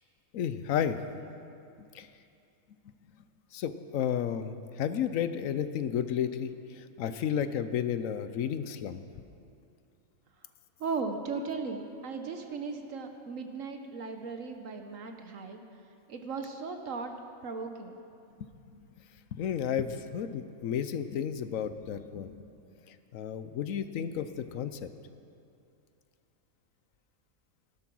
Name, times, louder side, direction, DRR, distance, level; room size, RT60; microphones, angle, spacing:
voice 1, 0.3-1.0 1.8-2.1 2.9-3.0 3.5-9.0 18.4-18.5 19.3-22.5 22.9-24.9, left 8 dB, 75° left, 11 dB, 1.1 m, -32 dB
voice 2, 10.8-15.6 16.1-17.1 17.4-18.0, right 4 dB, 70° right, 5 dB, 1.3 m, -37 dB
15.0 x 12.0 x 6.2 m, 2.6 s
omnidirectional pair, 1.4 m